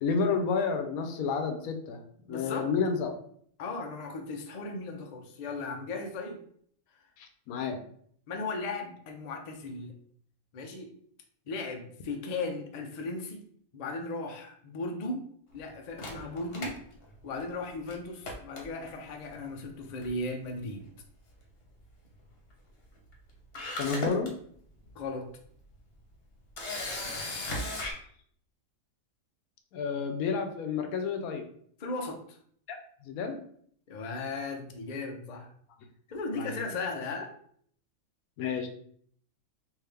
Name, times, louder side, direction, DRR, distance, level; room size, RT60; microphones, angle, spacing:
voice 1, 0.0-2.0 2.3-3.1 7.2-7.8 23.8-24.3 29.7-31.5 32.7-33.4 36.3-36.7 38.4-38.7, left 5 dB, 90° left, 6 dB, 1.1 m, -30 dB
voice 2, 2.3-2.7 3.6-6.4 8.3-9.9 10.5-10.9 11.5-13.5 13.7-15.2 15.5-16.8 17.2-20.9 24.9-25.3 31.8-32.4 33.9-35.5 36.1-37.3, left 3 dB, 70° left, 4 dB, 0.3 m, -36 dB
Camera, 16.0-17.6 17.9-18.0 18.3-19.1 20.0-20.3 20.6-20.7 23.1-23.2 23.5-24.3 24.9-25.0 26.6-27.9, left 1 dB, 50° left, 0.9 m, -36 dB
3.6 x 2.6 x 3.3 m, 0.62 s
omnidirectional pair, 1.5 m